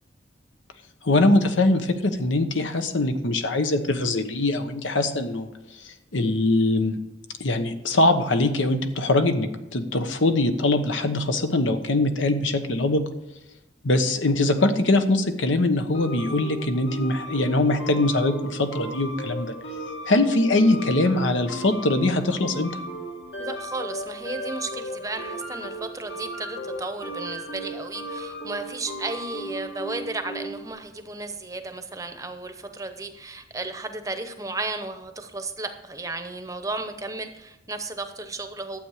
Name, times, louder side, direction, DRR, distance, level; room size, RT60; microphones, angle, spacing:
voice 1, 1.0-5.5 6.1-7.0 7.4-13.0 13.8-19.5 20.1-22.7, left 2 dB, 85° left, 8 dB, 1.1 m, -22 dB
sound 1, 15.9-30.7, right 1 dB, 65° left, 2.0 m, -36 dB
voice 2, 23.4-38.8, right 2 dB, 15° right, 8 dB, 0.8 m, -34 dB
12.0 x 8.1 x 4.9 m, 0.96 s
head